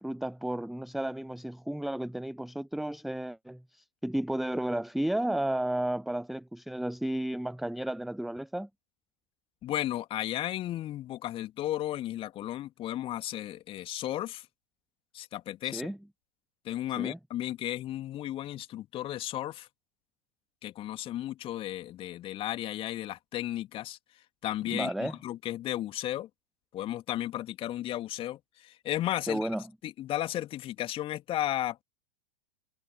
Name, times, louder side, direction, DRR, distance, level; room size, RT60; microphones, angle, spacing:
voice 1, 0.0-8.7 15.7-16.0 17.0-17.2 24.7-25.1 29.3-29.7, right 1 dB, ahead, 0.6 m, -33 dB
voice 2, 9.6-14.5 15.1-15.9 16.6-19.7 20.6-24.0 24.4-26.3 26.7-29.5 29.8-31.8, left 13 dB, 25° left, 2.6 m, -34 dB
figure-of-eight pair, 100°, 20 cm